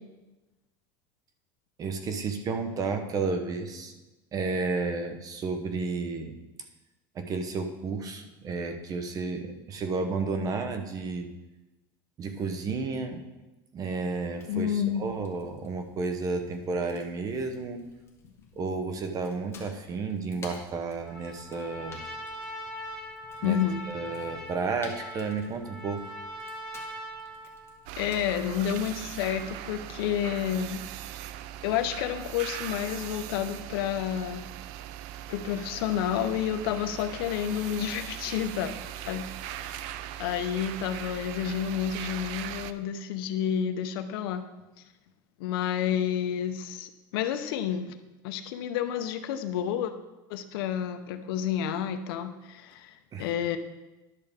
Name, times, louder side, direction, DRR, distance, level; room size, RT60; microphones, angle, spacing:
voice 1, 1.8-3.9 4.3-6.4 7.1-11.3 12.2-13.3 13.7-17.8 18.6-22.0 23.4-23.6 23.9-26.0 53.1-53.3, right 4 dB, 30° right, 7 dB, 0.8 m, -32 dB
Fire, 14.1-29.4, left 4 dB, 20° left, 1.3 m, -54 dB
voice 2, 14.5-15.0 23.4-23.8 28.0-30.8 31.6-34.4 35.3-38.7 39.1-39.9 40.2-44.4 45.4-48.0 48.2-49.9 50.3-53.6, left 9 dB, 85° left, 8 dB, 0.7 m, -30 dB
Trumpet, 21.0-27.8, left 1 dB, 5° left, 1.5 m, -41 dB
sound 1, 27.9-42.7, right 12 dB, 65° right, 0.4 m, -40 dB
11.0 x 6.6 x 3.5 m, 1.1 s
supercardioid pair, 140°, 12 cm